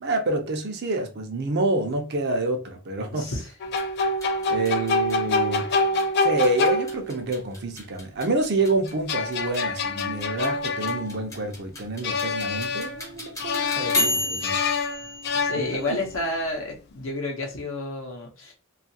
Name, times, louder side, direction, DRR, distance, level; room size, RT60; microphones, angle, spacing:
voice 1, 0.0-3.3 4.5-5.7 6.2-14.6 15.5-16.0, right 2 dB, 50° right, 0.6 m, -27 dB
voice 2, 3.1-3.5 15.3-18.5, left 2 dB, 70° left, 0.8 m, -30 dB
sound 1, 3.6-7.3 8.9-11.6 12.0-13.1 13.4-16.1, left 3 dB, 50° left, 0.3 m, -26 dB
sound 2, 3.7-16.4, left 2 dB, 15° left, 0.7 m, -34 dB
2.7 x 2.4 x 2.7 m
head